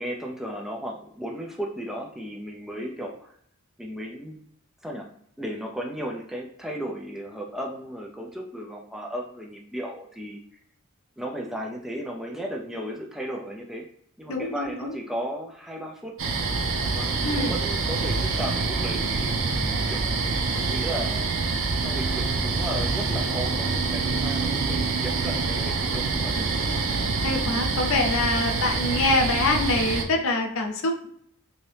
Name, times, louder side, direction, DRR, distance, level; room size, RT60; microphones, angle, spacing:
voice 1, 0.0-3.3 3.8-4.4 4.8-10.4 11.2-13.9 14.2-16.1 16.9-20.1 20.4-21.3 21.8-26.5, equal, ahead, -1 dB, 0.4 m, -35 dB
voice 2, 14.3-14.9 17.2-17.5 27.2-31.1, left 2 dB, 85° left, 3 dB, 0.6 m, -25 dB
sound 1, 16.2-30.0, right 4 dB, 70° right, 0.5 m, -26 dB
2.7 x 2.7 x 3.3 m, 0.67 s
head